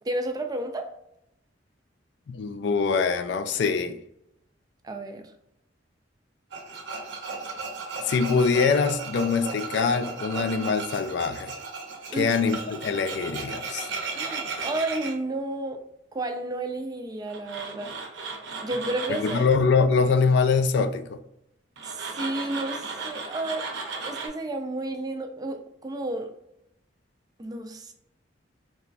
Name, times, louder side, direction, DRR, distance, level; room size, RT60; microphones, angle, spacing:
voice 1, 0.0-1.0 4.8-5.2 12.1-12.3 14.1-15.8 16.1-18.0 18.6-19.4 21.8-26.3 27.4-27.9, right 2 dB, 20° right, 6 dB, 0.3 m, -32 dB
voice 2, 2.3-4.0 8.0-11.5 12.1-13.9 19.2-21.2, left 5 dB, 65° left, 9 dB, 0.3 m, -24 dB
Tools, 6.5-15.1 17.3-19.5 21.8-24.3, right 4 dB, 75° right, 0.6 m, -35 dB
3.0 x 2.2 x 2.5 m, 0.81 s
head